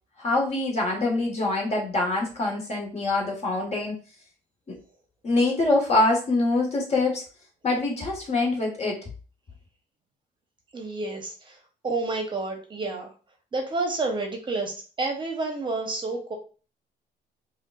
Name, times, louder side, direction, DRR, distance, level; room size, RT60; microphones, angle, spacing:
voice 1, 0.2-4.0 4.7-4.8 5.2-7.2 7.6-9.0, left 2 dB, 40° left, 0 dB, 1.4 m, -24 dB
voice 2, 10.7-11.6 11.8-13.1 13.5-16.4, right 3 dB, 30° right, 3 dB, 0.8 m, -29 dB
5.0 x 2.3 x 2.4 m, 0.36 s
cardioid pair, 110°, 17 cm